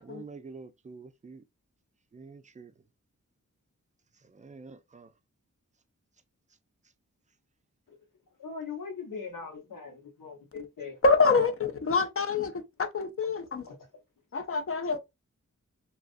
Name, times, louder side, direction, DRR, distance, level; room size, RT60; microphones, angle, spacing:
voice 1, 0.0-1.4 2.1-2.8 4.2-5.1, right 4 dB, 25° right, 0.3 m, -47 dB
voice 2, 8.4-11.5 13.7-13.8, left 5 dB, 85° left, 1.0 m, -40 dB
voice 3, 11.0-13.6 14.3-15.0, left 4 dB, 45° left, 0.5 m, -26 dB
2.3 x 2.3 x 2.4 m
cardioid pair, 45°, 32 cm